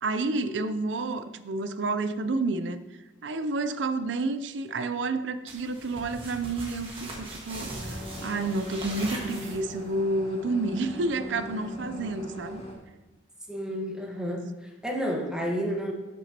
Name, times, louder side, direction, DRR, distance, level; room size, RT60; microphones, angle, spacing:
voice 1, 0.0-2.8 3.2-12.6, right 2 dB, 75° right, 12 dB, 0.5 m, -30 dB
Rummaging in a pocket, 5.5-9.9, right 2 dB, 30° right, 1.6 m, -40 dB
sound 1, 7.6-12.7, left 1 dB, 35° left, 1.8 m, -40 dB
voice 2, 13.5-15.9, equal, 5° right, -1 dB, 1.3 m, -31 dB
12.5 x 6.1 x 2.9 m, 1.2 s
head